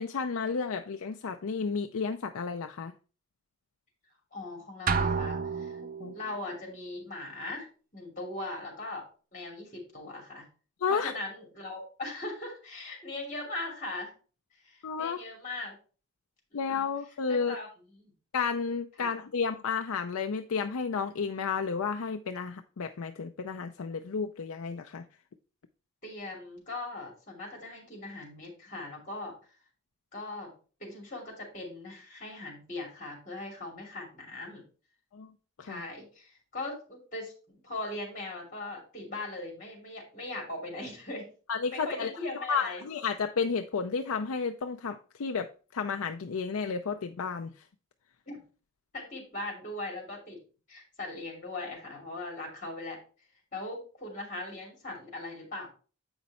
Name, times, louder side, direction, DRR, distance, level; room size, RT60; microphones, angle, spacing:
voice 1, 0.0-2.9 6.0-6.1 10.8-11.1 14.8-15.2 16.5-17.5 18.3-25.0 35.1-35.3 35.6-35.8 41.5-47.5, left 5 dB, 85° left, 0.5 m, -32 dB
voice 2, 4.3-5.8 6.1-7.7 7.9-9.0 9.3-10.4 10.9-14.1 14.6-15.8 16.5-16.9 17.3-18.1 19.0-19.1 26.0-29.4 30.1-30.5 30.8-34.6 35.6-41.3 41.7-42.8 48.3-48.4 48.9-50.4 50.7-53.0 53.5-55.7, left 2 dB, 35° left, 2.7 m, -39 dB
sound 1, 4.9-6.3, right 5 dB, 40° right, 0.5 m, -30 dB
8.0 x 5.2 x 4.2 m
head